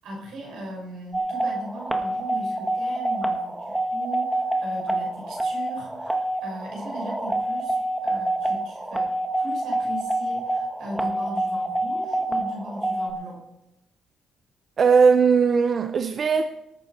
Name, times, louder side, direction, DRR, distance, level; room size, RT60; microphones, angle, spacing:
voice 1, 0.0-13.4, right 1 dB, 80° right, 5.8 m, -38 dB
sound 1, 1.1-13.1, right 1 dB, 10° right, 1.7 m, -26 dB
voice 2, 14.8-16.5, right 5 dB, 50° right, 0.7 m, -18 dB
19.0 x 8.9 x 4.4 m
cardioid pair, 90°, 0 cm